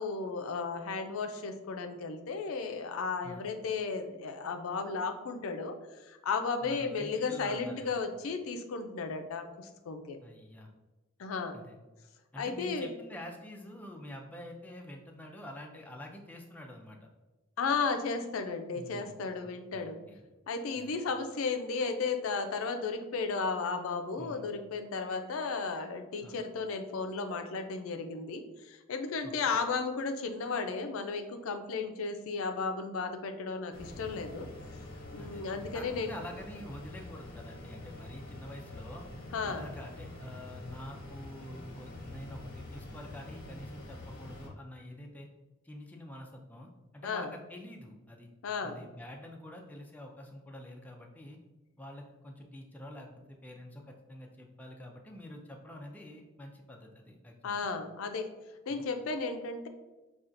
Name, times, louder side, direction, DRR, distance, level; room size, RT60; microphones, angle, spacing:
voice 1, 0.0-10.2 11.2-11.5 12.4-12.9 17.6-20.0 20.5-34.5 35.1-36.1 39.3-39.6 47.0-47.3 48.4-48.8 57.4-58.3 58.7-59.7, left 4 dB, 90° left, 6 dB, 0.4 m, -34 dB
voice 2, 6.6-8.0 10.2-10.7 11.5-11.8 12.3-17.1 18.7-20.2 20.8-20.9 24.2-24.5 26.2-26.4 29.2-29.3 35.2-35.5 35.7-39.1 39.4-45.3 45.6-48.3 48.6-51.4 51.8-57.7 58.7-58.8, left 1 dB, 10° left, 0 dB, 0.4 m, -47 dB
sound 1, 33.7-44.5, left 2 dB, 45° left, 0.8 m, -46 dB
5.6 x 2.3 x 2.5 m, 1.1 s
head